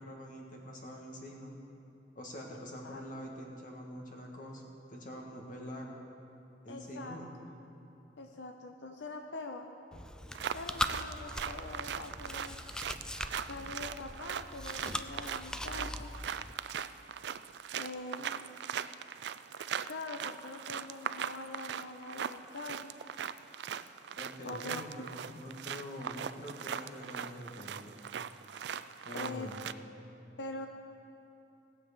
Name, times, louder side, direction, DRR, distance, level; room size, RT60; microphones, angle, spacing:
voice 1, 0.0-1.5 2.2-4.6 4.9-6.0 6.6-7.3 24.1-28.0 29.0-29.7, equal, 50° left, 0 dB, 1.8 m, -45 dB
voice 2, 6.7-7.5 8.2-9.7 10.5-12.6 13.4-16.1 17.8-18.4 19.9-22.9 24.4-24.8 28.6-28.8 29.1-29.5 30.4-30.7, left 3 dB, 90° left, 4 dB, 0.7 m, -44 dB
Chewing mastication, 9.9-16.5, left 1 dB, 5° left, 0.3 m, -41 dB
sound 1, 10.3-29.7, right 8 dB, 70° right, 0.4 m, -40 dB
18.5 x 7.5 x 5.2 m, 2.9 s
head